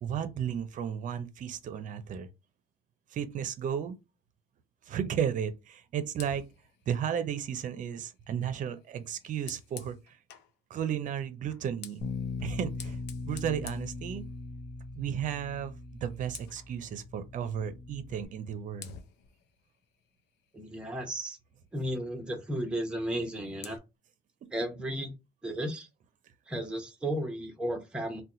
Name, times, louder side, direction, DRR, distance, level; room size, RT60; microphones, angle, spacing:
voice 1, 0.0-2.3 3.1-4.0 4.8-6.5 6.9-10.2 10.7-12.1 12.4-13.0 13.3-14.2 14.9-19.0, right 8 dB, 50° right, 0.6 m, -34 dB
Fire, 6.1-10.6 11.4-14.7 15.1-15.3 15.7-16.7 18.1-18.3 18.8-21.1 23.0-23.8, left 8 dB, 80° left, 0.6 m, -51 dB
Bass guitar, 12.0-18.3, left 3 dB, 40° left, 0.6 m, -40 dB
voice 2, 20.5-21.4 21.7-23.8 24.5-25.1 25.4-25.9 26.5-28.2, right 1 dB, 5° right, 0.8 m, -34 dB
2.8 x 2.2 x 3.7 m
cardioid pair, 110°, 17 cm